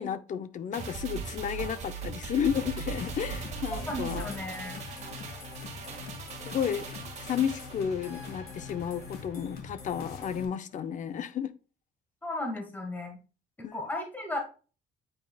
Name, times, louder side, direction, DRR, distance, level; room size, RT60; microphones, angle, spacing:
voice 1, 0.0-4.3 6.5-11.5 13.6-13.7, left 8 dB, 50° left, 0.6 m, -32 dB
sound 1, 0.7-9.3 9.6-9.7, right 6 dB, 45° right, 1.8 m, -40 dB
sound 2, 2.4-10.5, left 5 dB, 65° left, 2.0 m, -43 dB
voice 2, 3.9-4.8 12.2-13.2 13.7-14.4, left 1 dB, 10° left, 1.6 m, -35 dB
8.7 x 4.8 x 2.3 m
cardioid pair, 110°, 17 cm